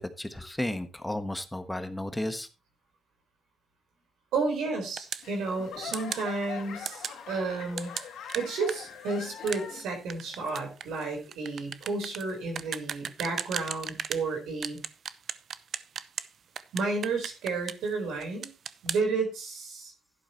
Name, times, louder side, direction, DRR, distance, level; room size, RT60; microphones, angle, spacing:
voice 1, 0.0-2.5, left 1 dB, 10° left, 8 dB, 1.3 m, -33 dB
voice 2, 4.3-7.9 8.3-14.8 16.7-18.5 18.8-19.9, right 3 dB, 85° right, 3 dB, 4.3 m, -32 dB
sound 1, 5.0-5.3 5.9-6.3 6.9-7.2 7.8-14.3 14.6-16.3 16.6-17.9 18.2-19.0, right 7 dB, 60° right, 0.7 m, -36 dB
Laughter / Clapping / Crowd, 5.2-10.0 10.3-10.9 11.4-11.5, left 8 dB, 75° left, 2.1 m, -43 dB
11.5 x 11.0 x 3.0 m, 0.29 s
cardioid pair, 90°, 0 cm